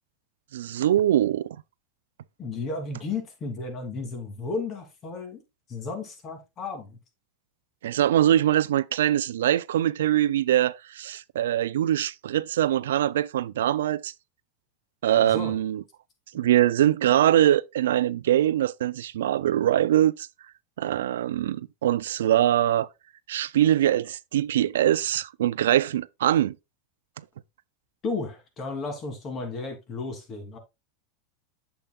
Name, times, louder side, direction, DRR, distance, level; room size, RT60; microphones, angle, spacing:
voice 1, 0.5-1.5 7.8-14.1 15.0-15.8 16.3-20.3 20.8-22.9 23.3-26.5, right 12 dB, 80° right, 0.4 m, -23 dB
voice 2, 2.4-5.4 5.7-7.0 15.2-15.6 16.4-16.5 28.0-30.6, left 3 dB, 35° left, 2.9 m, -33 dB
8.5 x 7.0 x 2.3 m
hypercardioid pair, 105°, 0 cm